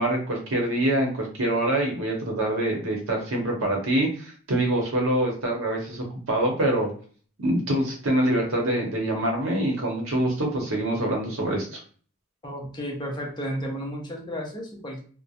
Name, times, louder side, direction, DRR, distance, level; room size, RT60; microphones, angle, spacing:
voice 1, 0.0-6.9 7.4-11.8, right 1 dB, 65° right, 0 dB, 0.8 m, -25 dB
voice 2, 12.4-15.0, equal, 20° left, 0 dB, 0.4 m, -33 dB
2.3 x 2.0 x 2.7 m, 0.44 s
head